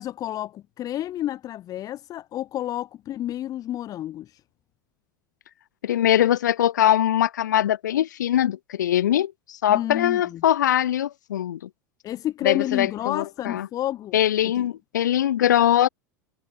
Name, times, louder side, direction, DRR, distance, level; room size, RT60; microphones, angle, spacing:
voice 1, 0.0-4.4 9.7-10.4 12.0-14.2 14.5-14.7, left 12 dB, 35° left, 6.1 m, -30 dB
voice 2, 5.8-11.6 12.4-13.7 14.1-15.9, left 11 dB, 70° left, 0.5 m, -22 dB
figure-of-eight pair, 85°, 10 cm